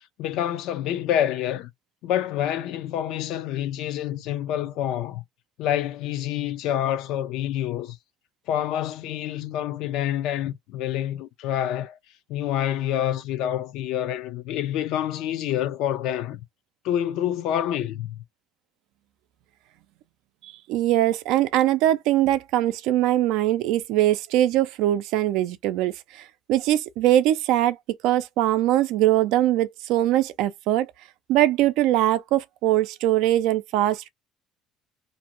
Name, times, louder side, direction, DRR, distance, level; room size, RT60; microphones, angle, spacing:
voice 1, 0.2-1.7 2.0-5.2 5.6-8.0 8.5-12.0 12.3-16.4 16.8-18.2, left 11 dB, 75° left, 0.5 m, -27 dB
voice 2, 20.4-30.9 31.3-34.1, right 13 dB, 80° right, 0.4 m, -22 dB
2.6 x 2.1 x 2.9 m
cardioid pair, 120°, 0 cm